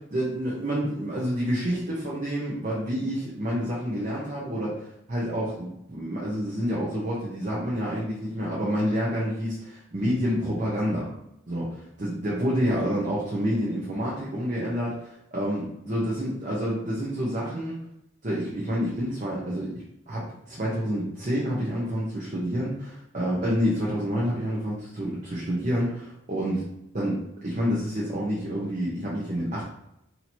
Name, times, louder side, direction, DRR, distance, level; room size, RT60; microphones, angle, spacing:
voice 1, 0.1-11.1 11.5-17.8 18.2-19.7 20.1-26.7 26.9-29.6, equal, 40° right, -6 dB, 0.8 m, -28 dB
2.8 x 2.8 x 4.3 m, 0.82 s
head